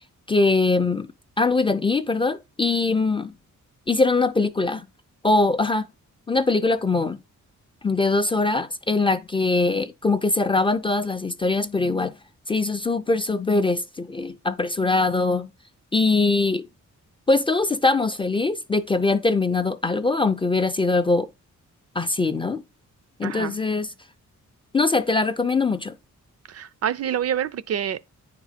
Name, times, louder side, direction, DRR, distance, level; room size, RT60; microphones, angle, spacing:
voice 1, 0.3-1.1 1.4-3.3 3.9-4.9 5.2-5.9 6.3-7.2 7.8-12.1 12.5-15.5 15.9-16.7 17.3-21.3 22.0-22.6 23.2-23.9 24.7-25.9, left 3 dB, 20° left, 0.3 m, -22 dB
voice 2, 23.2-23.6 26.5-28.1, right 9 dB, 55° right, 0.4 m, -27 dB
9.3 x 3.7 x 4.9 m
wide cardioid pair, 145°, 31 cm